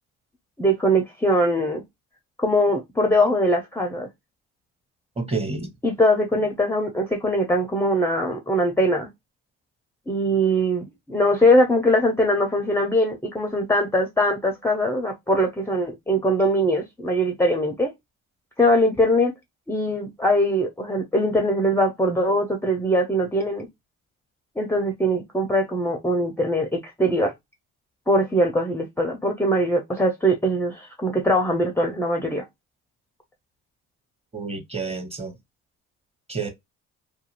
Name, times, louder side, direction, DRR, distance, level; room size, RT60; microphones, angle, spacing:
voice 1, 0.6-1.8 2.4-4.1 5.8-9.1 10.1-17.9 18.6-19.3 19.7-23.7 24.6-27.3 28.1-32.4, equal, 10° left, 0.5 m, -21 dB
voice 2, 5.2-5.7 34.3-35.3 36.3-36.5, right 4 dB, 20° right, 1.0 m, -29 dB
2.4 x 2.3 x 2.9 m
supercardioid pair, 80°, 31 cm